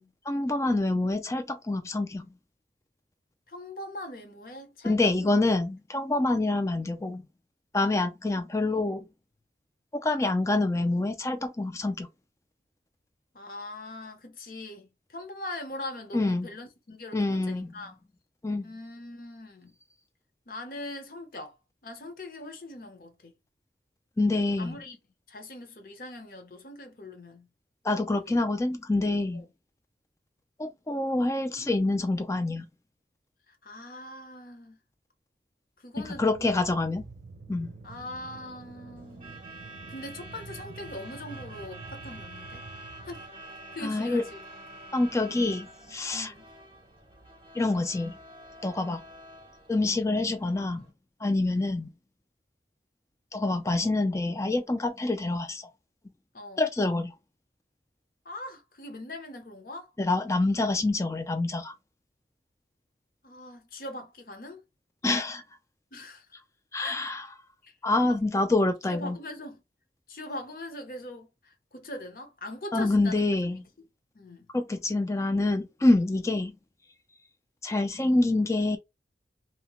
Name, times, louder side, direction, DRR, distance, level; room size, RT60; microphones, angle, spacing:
voice 1, 0.3-2.3 4.8-7.2 7.7-9.0 9.9-12.1 16.1-16.5 17.1-17.7 18.4-18.6 24.2-24.8 27.8-29.4 30.6-32.6 36.0-37.0 37.5-37.7 43.8-44.2 44.9-46.3 47.5-48.2 48.6-49.0 49.7-50.8 51.2-51.9 53.3-55.7 56.6-57.1 60.0-61.7 65.0-65.4 66.7-67.3 67.8-69.2 72.7-73.7 74.5-76.5 77.6-78.8, left 2 dB, 15° left, 0.3 m, -26 dB
voice 2, 3.5-5.0 5.2-5.4 13.3-18.0 18.6-19.7 20.5-21.6 21.8-23.3 24.6-25.0 25.3-27.5 27.9-28.4 29.3-29.4 33.5-34.8 35.8-36.2 37.8-39.4 39.9-42.6 43.0-43.3 43.7-44.4 46.1-46.4 51.5-51.8 56.3-56.6 58.2-59.9 63.2-64.6 65.9-66.3 66.8-67.0 67.6-67.7 68.0-68.2 68.9-69.6 70.1-73.2 74.1-74.5, left 1 dB, 50° left, 0.7 m, -41 dB
sound 1, 35.9-43.3, right 4 dB, 55° right, 0.5 m, -47 dB
Truck / Alarm, 39.0-50.9, right 1 dB, 30° right, 0.8 m, -47 dB
2.8 x 2.1 x 2.9 m
head